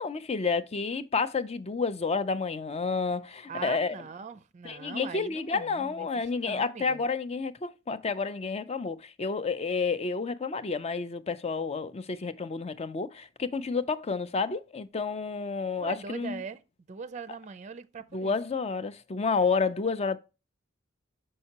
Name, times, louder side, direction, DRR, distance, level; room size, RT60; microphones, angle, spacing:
voice 1, 0.0-4.0 4.6-16.4 18.1-20.2, left 4 dB, 30° left, 0.5 m, -30 dB
voice 2, 3.5-7.0 15.8-16.6 16.9-18.3, right 5 dB, 35° right, 0.4 m, -41 dB
6.5 x 5.5 x 2.8 m
head